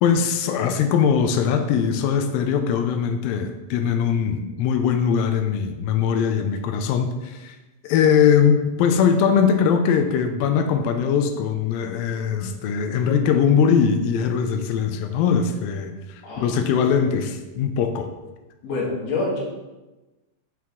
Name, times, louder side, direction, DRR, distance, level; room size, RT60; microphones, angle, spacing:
voice 1, 0.0-7.6 7.8-15.9 16.4-18.1, left 7 dB, 85° left, 7 dB, 2.3 m, -21 dB
voice 2, 16.2-17.1 18.6-19.4, left 3 dB, 55° left, -5 dB, 2.2 m, -28 dB
6.1 x 4.5 x 3.5 m, 1.1 s
omnidirectional pair, 4.1 m